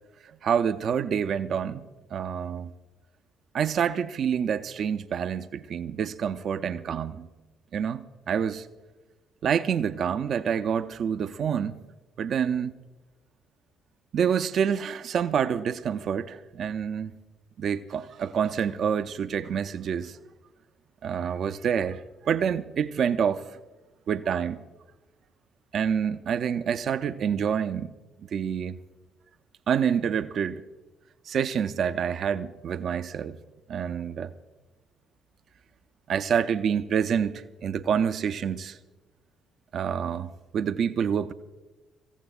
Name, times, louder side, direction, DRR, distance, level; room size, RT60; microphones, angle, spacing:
voice 1, 0.4-1.8 2.1-2.7 3.5-7.3 7.7-8.7 9.4-11.8 12.2-12.7 14.1-17.1 17.6-20.2 21.0-23.5 24.1-24.6 25.7-27.9 28.3-28.8 29.7-30.6 31.3-33.4 33.7-34.3 36.1-38.8 39.7-41.3, right 7 dB, 50° right, 0.5 m, -27 dB
26.5 x 15.5 x 2.3 m
figure-of-eight pair, 45°, 0 cm